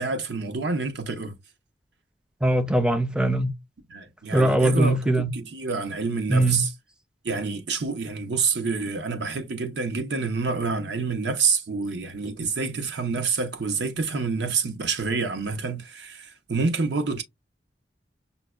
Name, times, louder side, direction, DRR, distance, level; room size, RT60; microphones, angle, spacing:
voice 1, 0.0-1.3 3.9-6.7 7.2-17.2, right 4 dB, 75° right, 0.7 m, -27 dB
voice 2, 2.4-3.5 4.3-5.3 6.3-6.6, right 1 dB, 5° right, 0.4 m, -21 dB
5.4 x 2.1 x 2.3 m
head